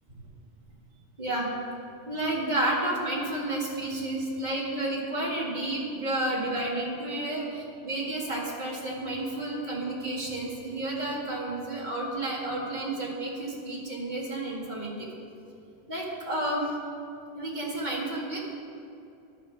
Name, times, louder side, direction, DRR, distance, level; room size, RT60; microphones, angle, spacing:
voice 1, 1.2-1.5 2.1-15.1 15.9-16.7 17.3-18.4, right 1 dB, 40° right, -4 dB, 2.2 m, -31 dB
10.5 x 6.3 x 7.4 m, 2.7 s
omnidirectional pair, 1.2 m